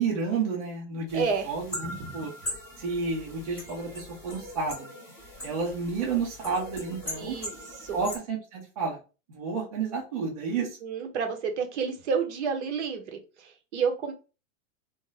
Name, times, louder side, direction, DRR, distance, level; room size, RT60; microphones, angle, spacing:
voice 1, 0.0-2.3 2.8-4.9 5.4-7.3 7.9-9.0 9.3-10.7, right 5 dB, 30° right, -2 dB, 0.4 m, -30 dB
sound 1, 1.1-8.2, left 1 dB, 5° left, 1.1 m, -41 dB
voice 2, 1.1-1.5 1.8-2.1 7.1-7.5 7.8-8.0 10.6-14.1, right 6 dB, 55° right, 5 dB, 0.7 m, -30 dB
2.4 x 2.1 x 3.8 m, 0.32 s
supercardioid pair, 180°, 40 cm